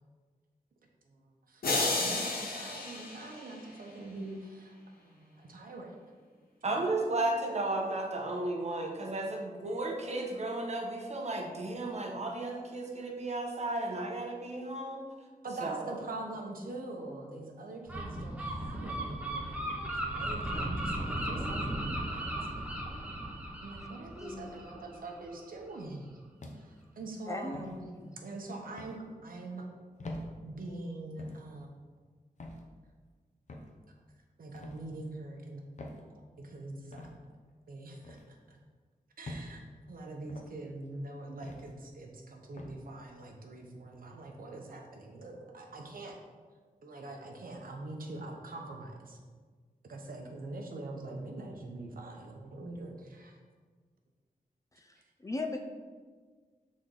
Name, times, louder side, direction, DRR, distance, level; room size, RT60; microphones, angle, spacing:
voice 1, 1.5-6.0 15.4-22.3 23.6-26.2 26.6-27.9 28.2-29.7 30.4-31.7 34.4-35.6 36.1-37.1 37.7-38.6 39.2-46.2 46.8-49.2 49.9-53.4, right 2 dB, 75° right, 1 dB, 0.9 m, -44 dB
sound 1, 1.6-4.0, left 2 dB, 90° left, 1.1 m, -32 dB
voice 2, 6.6-15.0 15.6-16.0, right 2 dB, 50° right, 1 dB, 1.0 m, -34 dB
Gull seagull, 17.9-25.4, right 1 dB, 10° right, 0.9 m, -36 dB
voice 3, 24.2-24.6 27.3-27.6 27.9-28.2 54.7-55.6, left 2 dB, 20° left, 3 dB, 0.5 m, -39 dB
sound 2, 26.4-26.9 27.5-27.8 28.8-29.0 30.0-30.3 31.2-31.4 32.4-32.6 33.5-33.7 34.5-34.8 35.8-36.0 36.9-37.1 38.0-38.3 39.2-39.5 40.3-40.5 41.4-41.7 42.6-42.8, left 1 dB, 55° left, 0.7 m, -44 dB
6.4 x 4.2 x 3.8 m, 1.5 s
wide cardioid pair, 130°, 15 cm